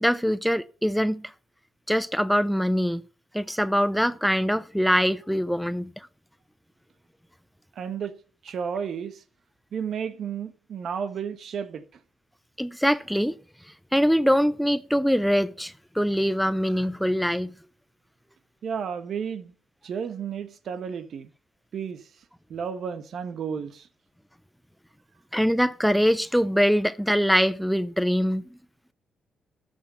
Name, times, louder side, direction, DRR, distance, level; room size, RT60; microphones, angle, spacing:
voice 1, 0.0-1.3 1.9-3.0 3.3-6.1 12.6-13.3 13.9-17.5 25.3-28.4, equal, ahead, 0.4 m, -23 dB
voice 2, 7.7-8.2 8.4-9.2 9.7-11.8 18.6-19.5 19.8-21.3 21.7-22.1 22.5-23.9, right 7 dB, 60° right, 1.2 m, -32 dB
12.5 x 6.5 x 5.6 m
cardioid pair, 90°, 0 cm